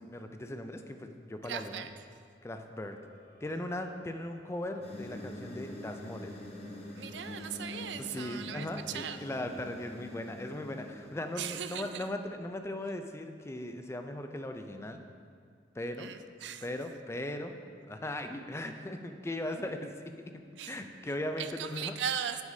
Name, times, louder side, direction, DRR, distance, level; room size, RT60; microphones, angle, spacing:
voice 1, 0.0-1.8 2.4-3.0 3.4-6.4 8.0-15.0 15.7-16.1 16.6-17.6 17.9-22.0, left 1 dB, 15° left, 6 dB, 0.4 m, -38 dB
voice 2, 1.4-1.9 7.0-9.3 11.4-12.1 16.0-16.6 20.6-20.8 21.4-22.4, right 8 dB, 75° right, 10 dB, 0.4 m, -38 dB
sound 1, 2.8-11.7, left 1 dB, 25° right, 1.6 m, -60 dB
sound 2, 4.8-11.5, left 1 dB, 35° left, 0.9 m, -45 dB
10.0 x 8.1 x 2.7 m, 2.2 s
head